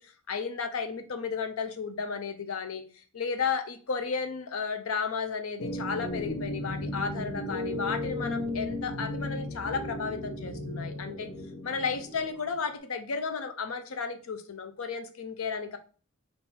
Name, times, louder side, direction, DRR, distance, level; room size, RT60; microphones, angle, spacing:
voice 1, 0.3-2.8 3.1-11.3 11.6-15.8, left 5 dB, 80° left, 8 dB, 0.6 m, -33 dB
sound 1, 5.6-12.7, left 1 dB, 65° left, 1.0 m, -35 dB
3.7 x 2.6 x 4.2 m, 0.39 s
head